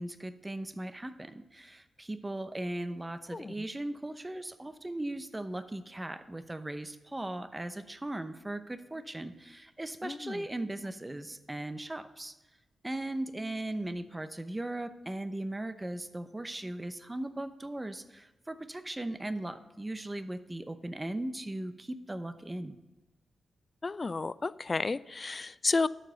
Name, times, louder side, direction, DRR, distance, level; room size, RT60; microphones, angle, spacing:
voice 1, 0.0-12.3 12.8-22.8, right 1 dB, 20° right, 11 dB, 0.8 m, -38 dB
voice 2, 3.3-3.7 10.0-10.5 23.8-25.9, left 3 dB, 40° left, 18 dB, 0.3 m, -32 dB
12.5 x 4.8 x 6.3 m, 1.1 s
supercardioid pair, 50°, 0 cm